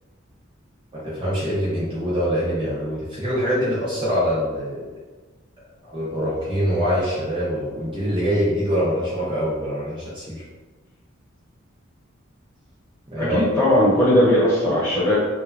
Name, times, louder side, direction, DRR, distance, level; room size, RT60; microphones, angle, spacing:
voice 1, 1.0-4.9 5.9-10.4 13.1-13.4, equal, 25° right, -9 dB, 0.6 m, -24 dB
voice 2, 13.2-15.2, left 1 dB, 15° left, -10 dB, 1.1 m, -18 dB
3.0 x 2.2 x 2.5 m, 1.3 s
head